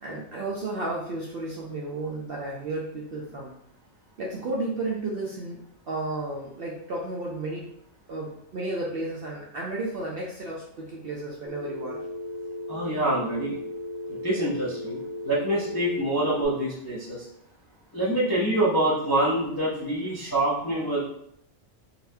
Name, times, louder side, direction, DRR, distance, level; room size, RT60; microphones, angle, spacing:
voice 1, 0.0-3.5 4.2-5.6 5.9-7.6 8.1-12.0, right 2 dB, 60° right, -3 dB, 0.6 m, -33 dB
Telephone, 11.5-16.5, left 1 dB, 65° left, 1.1 m, -36 dB
voice 2, 12.7-13.5 14.2-17.2 17.9-21.0, right 1 dB, 25° left, -9 dB, 0.5 m, -26 dB
3.9 x 2.2 x 2.6 m, 0.74 s
omnidirectional pair, 1.4 m